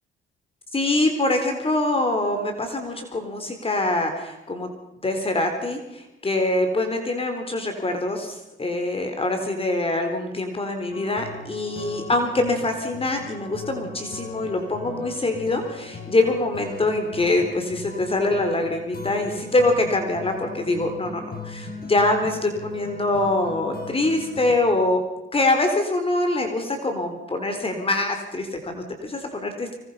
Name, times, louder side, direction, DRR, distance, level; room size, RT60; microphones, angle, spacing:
voice 1, 0.7-4.7 5.0-25.0 25.3-29.8, left 2 dB, 30° left, 5 dB, 3.9 m, -24 dB
sound 1, 10.9-24.6, left 4 dB, 50° left, 5.3 m, -39 dB
25.5 x 20.0 x 5.7 m, 1.0 s
cardioid pair, 90°, 20 cm